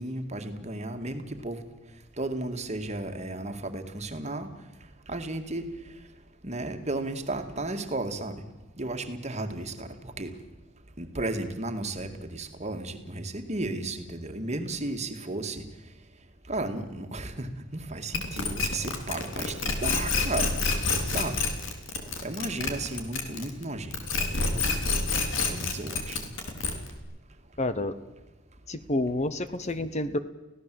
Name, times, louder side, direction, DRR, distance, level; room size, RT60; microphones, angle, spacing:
voice 1, 0.0-1.6 2.2-4.5 5.1-5.7 6.4-8.4 8.8-10.3 11.0-15.6 16.5-20.5 21.1-21.4 22.2-23.9 24.3-24.6 25.5-26.2, right 2 dB, 35° right, 6 dB, 2.0 m, -34 dB
sound 1, 18.1-23.6 23.9-27.0, left 4 dB, 65° left, 3.4 m, -28 dB
voice 2, 27.6-27.9 28.7-30.2, left 2 dB, 35° left, 12 dB, 1.0 m, -29 dB
25.0 x 17.0 x 7.7 m, 1.1 s
head